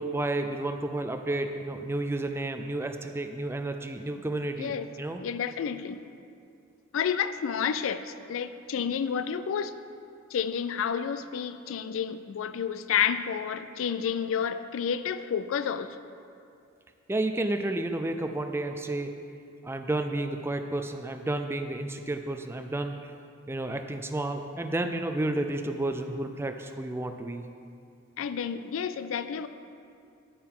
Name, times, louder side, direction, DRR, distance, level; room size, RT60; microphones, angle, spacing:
voice 1, 0.0-5.2 17.1-19.1 19.6-23.1 23.5-27.4, right 2 dB, 10° right, 6 dB, 0.4 m, -31 dB
voice 2, 5.2-6.0 6.9-9.7 10.3-16.0 28.2-29.5, left 7 dB, 85° left, 12 dB, 0.4 m, -30 dB
10.0 x 8.8 x 3.7 m, 2.5 s
head